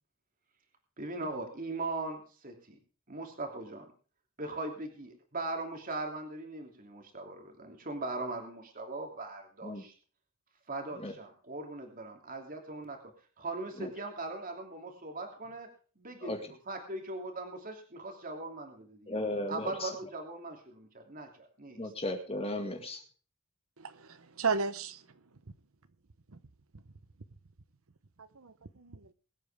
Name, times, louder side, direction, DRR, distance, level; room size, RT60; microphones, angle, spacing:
voice 1, 1.0-2.8 3.1-3.9 4.4-9.9 10.7-13.0 13.4-15.7 16.0-19.2 19.5-21.9, right 2 dB, 40° right, 2.9 m, -40 dB
voice 2, 19.1-19.7 21.8-23.0, left 1 dB, 25° left, 1.9 m, -35 dB
voice 3, 23.8-25.0 28.2-29.1, right 4 dB, 65° right, 0.9 m, -34 dB
22.5 x 9.0 x 3.5 m
head